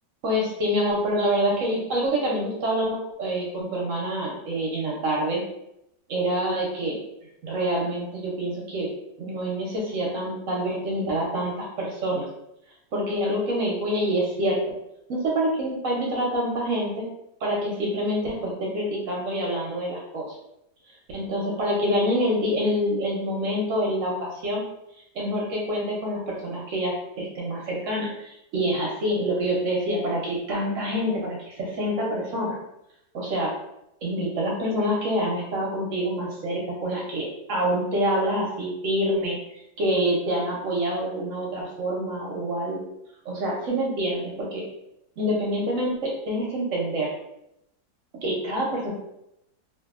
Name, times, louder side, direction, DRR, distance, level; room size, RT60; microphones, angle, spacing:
voice 1, 0.2-5.4 6.1-7.0 7.4-8.9 9.2-12.3 12.9-14.7 15.1-17.1 17.4-20.4 21.1-24.6 25.1-32.6 33.1-33.5 34.0-39.4 39.8-42.8 43.2-44.6 45.2-47.1 48.2-48.9, equal, 65° right, -2 dB, 0.8 m, -26 dB
2.6 x 2.6 x 2.3 m, 0.81 s
omnidirectional pair, 1.8 m